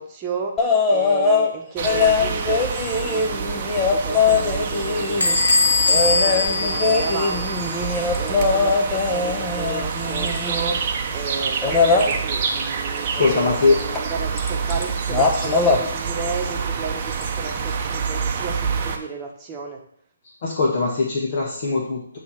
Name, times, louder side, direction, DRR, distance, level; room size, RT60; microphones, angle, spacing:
voice 1, 0.0-2.7 3.0-10.8 11.1-19.8, right 4 dB, 20° right, 0 dB, 1.2 m, -33 dB
sound 1, 0.6-1.5 1.8-5.4 5.9-10.7 11.6-12.1 13.9-14.1 14.4-14.8 15.1-15.8 17.2-17.3, left 4 dB, 15° left, 0.9 m, -21 dB
sound 2, 1.8-19.0, right 6 dB, 35° right, 0.8 m, -27 dB
Bell / Squeak, 5.2-7.7, left 3 dB, 85° left, 1.2 m, -21 dB
voice 2, 13.1-13.8 20.4-22.2, left 3 dB, 45° left, -2 dB, 1.4 m, -21 dB
8.5 x 3.1 x 5.7 m, 0.64 s
figure-of-eight pair, 145°, 0 cm